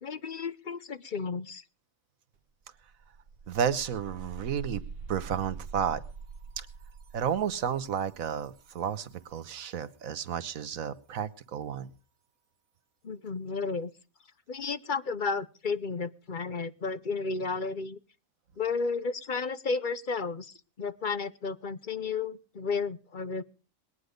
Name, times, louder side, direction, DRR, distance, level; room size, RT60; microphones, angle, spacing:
voice 1, 0.0-1.6 13.0-13.9 14.5-18.0 18.6-23.4, left 4 dB, 45° left, 14 dB, 0.8 m, -33 dB
tech fx, 2.3-2.4 2.8-9.5, right 5 dB, 45° right, 1.5 m, -45 dB
voice 2, 3.5-4.8 5.1-6.0 6.6-6.7 7.1-11.9, right 8 dB, 75° right, 12 dB, 1.5 m, -32 dB
20.5 x 9.8 x 5.1 m, 0.36 s
omnidirectional pair, 1.4 m